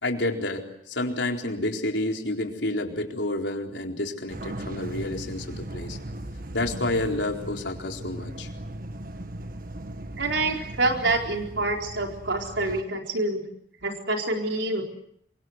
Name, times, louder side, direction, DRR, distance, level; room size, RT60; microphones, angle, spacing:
voice 1, 0.0-6.0 6.5-8.5, left 1 dB, 80° left, 2 dB, 4.2 m, -29 dB
sound 1, 4.3-12.8, right 1 dB, 50° right, 1.5 m, -37 dB
voice 2, 10.2-13.4 13.8-14.8, right 2 dB, 85° right, 2 dB, 4.3 m, -26 dB
27.0 x 24.5 x 8.1 m, 0.71 s
head